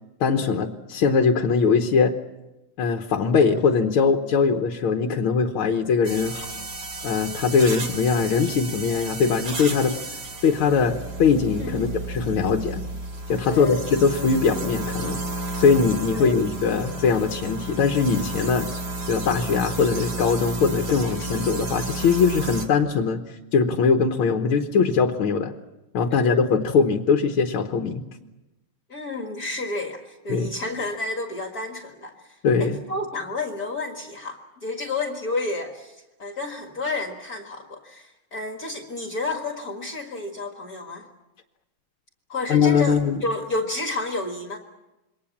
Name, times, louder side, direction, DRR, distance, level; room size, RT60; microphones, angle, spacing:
voice 1, 0.2-2.1 2.8-6.5 7.0-9.9 10.4-12.8 13.3-15.2 15.6-18.7 19.1-23.2 23.5-25.5 25.9-28.0 30.3-30.5 32.4-32.8 42.5-43.2, left 5 dB, 75° left, 4 dB, 2.0 m, -21 dB
sound 1, 6.0-22.7, right 2 dB, 50° right, 3.4 m, -32 dB
voice 2, 11.6-12.0 13.5-13.8 16.1-16.4 26.1-26.4 28.9-41.1 42.3-44.6, left 2 dB, 45° left, 3 dB, 2.2 m, -31 dB
27.5 x 23.0 x 7.2 m, 1.0 s
omnidirectional pair, 2.3 m